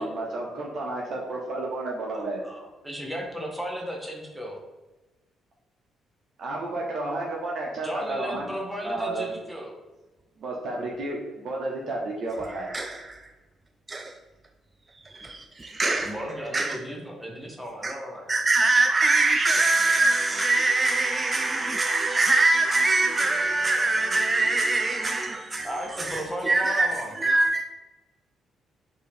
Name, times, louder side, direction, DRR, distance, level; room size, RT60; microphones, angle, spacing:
voice 1, 0.0-2.4 6.4-8.5 8.8-9.3 10.4-12.7, right 2 dB, 60° right, 0.9 m, -31 dB
voice 2, 2.1-4.6 7.8-9.7 16.0-18.3 25.6-27.1, equal, ahead, 0.9 m, -35 dB
voice 3, 12.5-13.3 13.9-14.2 14.9-16.2 16.5-16.8 17.8-17.9 18.3-27.6, right 2 dB, 25° right, 0.3 m, -23 dB
4.5 x 2.8 x 3.4 m
cardioid pair, 90°, 0 cm